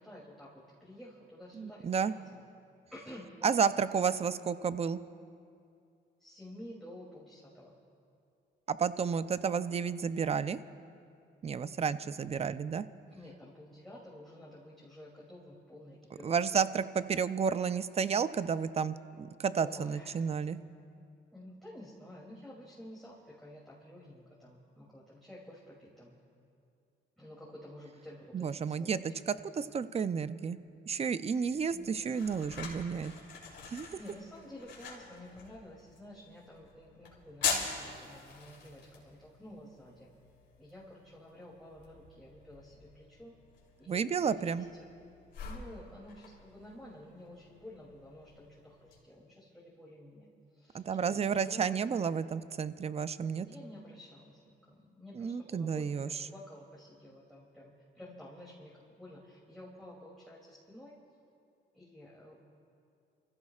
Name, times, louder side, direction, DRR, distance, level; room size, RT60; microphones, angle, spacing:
voice 1, 0.0-2.4 2.9-3.5 6.2-7.7 11.5-12.0 13.1-16.4 19.6-20.3 21.3-26.1 27.2-28.9 29.5-29.8 31.7-32.7 34.0-40.1 40.6-43.3 43.8-44.9 45.4-50.3 50.5-51.7 53.2-54.4 54.7-60.9 61.7-62.3, left 1 dB, ahead, -6 dB, 2.8 m, -51 dB
voice 2, 1.6-2.1 3.4-5.0 8.7-10.6 11.4-12.9 16.2-20.6 28.3-30.6 30.9-33.1 33.7-33.9 43.9-44.7 50.7-53.5 55.2-56.1, right 6 dB, 30° right, 13 dB, 0.5 m, -31 dB
sound 1, 31.4-49.0, left 5 dB, 70° left, 3.3 m, -44 dB
30.0 x 15.5 x 2.4 m, 2.5 s
cardioid pair, 90°, 20 cm